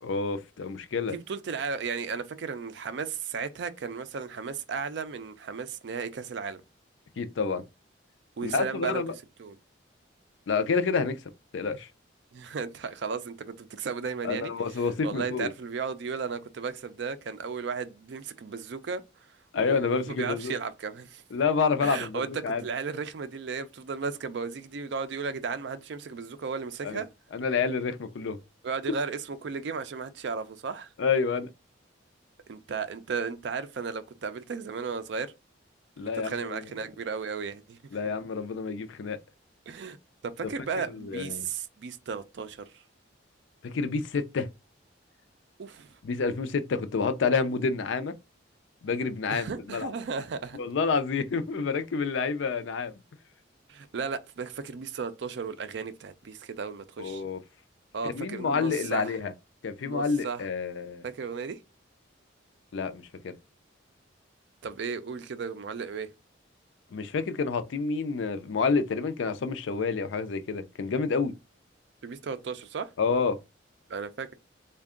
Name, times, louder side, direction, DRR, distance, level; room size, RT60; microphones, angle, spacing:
voice 1, 0.0-1.2 7.2-7.6 8.4-9.1 10.5-11.2 11.5-11.9 14.2-15.5 19.5-20.5 21.3-22.6 26.8-27.0 27.3-28.4 31.0-31.5 36.0-36.6 37.9-39.2 41.0-41.5 43.6-44.5 46.0-48.2 48.8-49.9 50.5-52.9 57.0-57.4 58.0-59.3 59.6-61.0 62.7-63.3 66.9-71.3 73.0-73.4, left 5 dB, 75° left, 0.4 m, -28 dB
voice 2, 1.1-6.6 8.4-9.0 9.4-9.6 12.3-14.5 15.0-19.0 19.6-21.2 21.8-27.1 28.6-30.9 32.5-35.3 36.1-38.0 39.7-40.0 40.2-42.8 45.6-46.0 49.3-50.6 53.7-57.2 57.9-59.2 59.8-60.5 61.0-61.6 64.6-66.1 72.0-72.9 73.9-74.3, right 5 dB, 60° right, 0.4 m, -35 dB
3.5 x 2.2 x 3.6 m
head